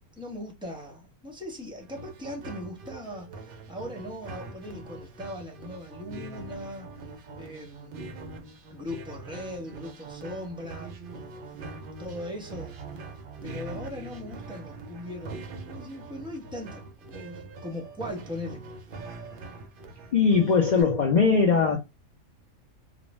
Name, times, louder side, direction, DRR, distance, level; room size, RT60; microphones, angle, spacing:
voice 1, 0.2-6.9 7.4-8.1 8.7-10.9 11.5-12.8 13.4-15.4 15.7-18.6, left 1 dB, 5° right, 0.4 m, -39 dB
sound 1, 1.8-20.8, right 3 dB, 65° right, 0.5 m, -42 dB
voice 2, 20.1-21.8, left 5 dB, 75° left, 0.4 m, -20 dB
2.5 x 2.1 x 3.0 m
omnidirectional pair, 1.5 m